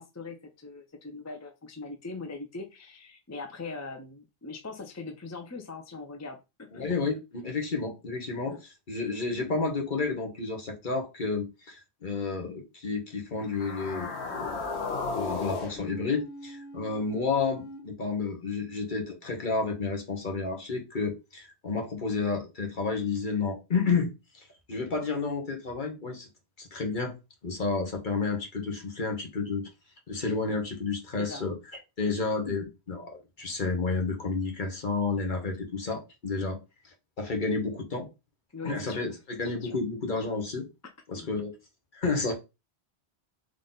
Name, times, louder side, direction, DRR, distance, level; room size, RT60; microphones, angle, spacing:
voice 1, 0.0-7.0 8.5-8.6 31.2-31.4 36.3-36.5 38.5-39.1 39.6-39.8 41.1-41.3, left 3 dB, 20° left, 0.5 m, -41 dB
voice 2, 6.7-8.6 8.9-14.6 15.1-24.1 24.3-26.3 26.6-27.1 27.4-29.7 30.1-31.5 32.0-36.6 37.2-38.1 38.6-40.7 41.1-41.5 41.9-42.3, left 4 dB, 50° left, 1.3 m, -31 dB
sound 1, 13.4-17.8, left 3 dB, 80° left, 1.3 m, -36 dB
3.9 x 3.2 x 3.9 m
omnidirectional pair, 1.1 m